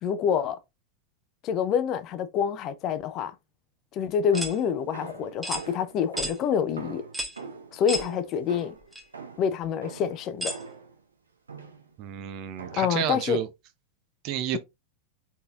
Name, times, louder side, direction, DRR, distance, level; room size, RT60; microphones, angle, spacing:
voice 1, 0.0-0.6 1.4-3.3 3.9-7.0 7.7-8.7 9.4-10.5 12.8-13.4, left 7 dB, 35° left, 0.6 m, -27 dB
sound 1, 4.3-4.6 5.4-5.7 6.2-6.4 7.1-7.4 7.9-8.1 8.9-9.0 10.4-10.6, right 1 dB, 5° right, 0.8 m, -32 dB
sound 2, 4.3-11.0 11.5-11.9 12.6-13.1, right 4 dB, 75° right, 1.0 m, -43 dB
voice 2, 12.0-13.5 14.2-14.6, right 10 dB, 40° right, 0.6 m, -31 dB
4.0 x 4.0 x 2.4 m
figure-of-eight pair, 90°, 0 cm